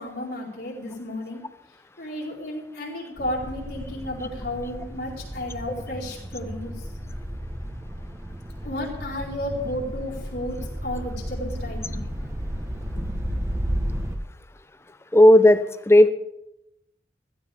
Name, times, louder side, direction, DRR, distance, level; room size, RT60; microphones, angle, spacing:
voice 1, 0.0-1.4 2.0-6.7 8.6-12.1 12.9-13.1, left 1 dB, 70° left, -5 dB, 4.6 m, -33 dB
sound 1, 3.2-14.2, equal, 15° right, 1.1 m, -33 dB
voice 2, 15.1-16.1, left 1 dB, 15° left, 12 dB, 0.6 m, -14 dB
16.5 x 14.5 x 3.6 m, 0.87 s
head